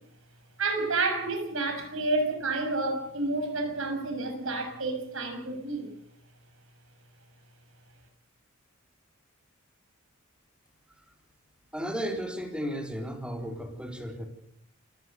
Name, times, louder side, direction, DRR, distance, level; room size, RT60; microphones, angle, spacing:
voice 1, 0.6-5.9, right 2 dB, 70° right, 5 dB, 6.3 m, -30 dB
voice 2, 11.7-14.3, equal, 5° right, 4 dB, 4.1 m, -34 dB
29.0 x 17.5 x 6.7 m, 0.70 s
head